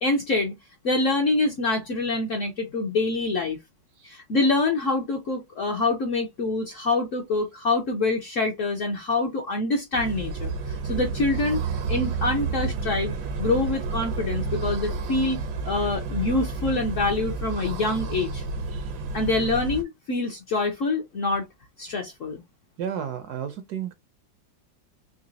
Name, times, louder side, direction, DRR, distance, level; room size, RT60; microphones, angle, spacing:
voice 1, 0.0-0.5 0.8-3.6 4.0-11.6 11.9-18.4 19.1-21.5 21.8-22.4, left 3 dB, 60° left, 0.8 m, -25 dB
sound 1, 9.9-19.8, right 4 dB, 90° right, 1.6 m, -30 dB
voice 2, 18.7-19.3 22.8-23.9, right 8 dB, 70° right, 0.9 m, -33 dB
4.0 x 3.0 x 2.6 m
omnidirectional pair, 2.1 m